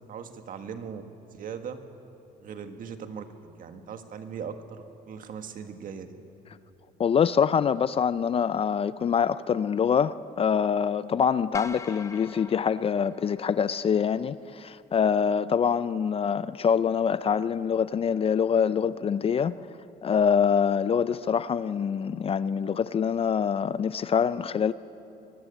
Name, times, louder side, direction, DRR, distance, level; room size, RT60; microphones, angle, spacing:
voice 1, 0.1-1.0 1.3-1.8 2.4-6.1, right 7 dB, 55° right, 1.6 m, -39 dB
voice 2, 7.0-19.5 20.0-24.7, left 7 dB, 35° left, 0.5 m, -25 dB
sound 1, 11.5-13.9, left 3 dB, 15° left, 0.9 m, -42 dB
23.0 x 14.0 x 9.9 m
cardioid pair, 110°, 17 cm